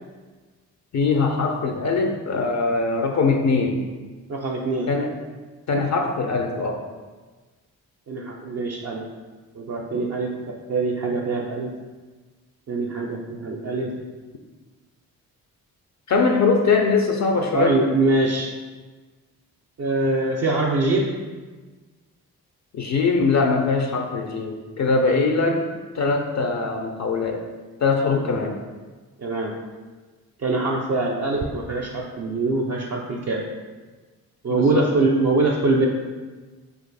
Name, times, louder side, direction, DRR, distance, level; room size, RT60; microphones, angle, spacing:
voice 1, 0.9-3.8 4.9-5.2 5.7-6.9 16.1-17.8 22.7-25.6 25.9-27.4 27.8-28.6 34.5-34.9, left 4 dB, 50° left, 3 dB, 0.5 m, -22 dB
voice 2, 4.3-4.9 8.1-9.0 9.5-10.3 10.7-11.7 12.7-13.9 17.5-18.5 19.8-21.1 28.2-28.4 29.2-29.5 30.4-33.4 34.4-35.9, right 2 dB, 45° right, -2 dB, 0.5 m, -23 dB
3.0 x 2.4 x 3.9 m, 1.3 s
supercardioid pair, 50°, 38 cm